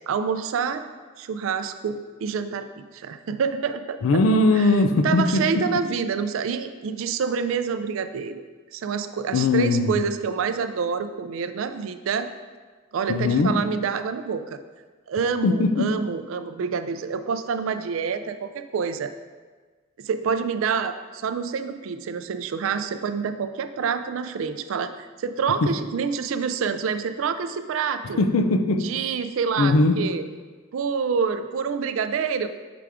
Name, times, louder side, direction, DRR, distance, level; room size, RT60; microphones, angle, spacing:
voice 1, 0.1-0.8 1.2-2.7 2.9-4.2 4.5-4.7 5.0-8.4 8.7-12.3 12.9-14.6 15.1-19.1 20.0-28.2 28.8-30.2 30.7-32.5, right 6 dB, 70° right, 10 dB, 0.4 m, -27 dB
voice 2, 4.0-5.6 9.3-10.0 13.1-13.6 15.4-15.9 25.6-25.7 28.2-28.9 29.6-30.1, left 2 dB, 90° left, 8 dB, 0.5 m, -20 dB
5.9 x 4.9 x 3.5 m, 1.4 s
head